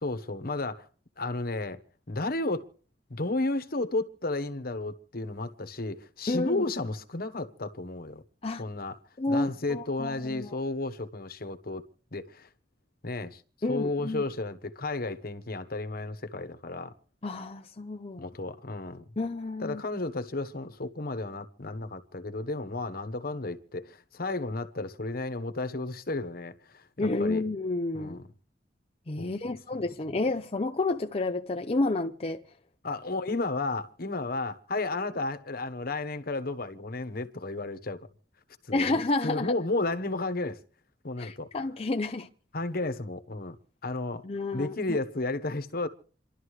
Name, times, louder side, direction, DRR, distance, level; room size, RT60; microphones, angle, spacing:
voice 1, 0.0-0.9 1.2-1.8 2.1-2.7 3.1-8.2 8.6-9.0 9.3-11.8 12.1-12.5 13.0-13.4 13.7-16.9 18.2-19.0 19.6-27.4 27.9-28.2 29.2-29.3 32.8-38.1 38.6-40.6 41.0-41.5 42.5-43.6 43.8-44.2 44.5-45.9, left 2 dB, 55° left, 1.2 m, -33 dB
voice 2, 6.3-6.7 8.4-8.6 9.2-10.6 13.6-14.2 17.2-18.2 19.2-19.8 27.0-28.2 29.1-32.4 38.7-39.5 41.2-42.3 44.2-45.0, left 2 dB, 35° left, 0.7 m, -30 dB
28.5 x 12.0 x 3.2 m
head